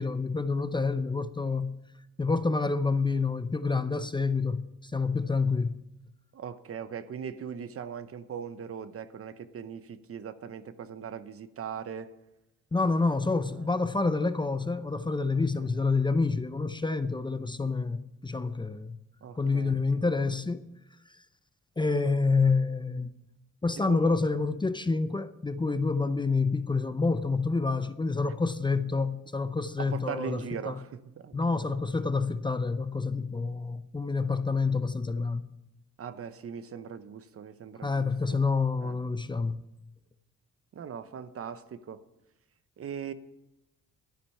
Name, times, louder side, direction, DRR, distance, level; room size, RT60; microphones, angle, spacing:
voice 1, 0.0-1.8 2.2-5.7 12.7-19.0 19.4-20.6 21.8-23.1 23.6-30.8 31.3-35.5 37.8-39.6, left 4 dB, 15° left, 0.6 m, -28 dB
voice 2, 6.3-12.1 13.5-13.7 19.2-19.8 23.8-24.2 29.8-31.4 36.0-38.4 38.8-39.0 40.7-42.0 42.8-43.1, right 7 dB, 50° right, 0.9 m, -40 dB
12.0 x 10.0 x 5.5 m
cardioid pair, 90°, 30 cm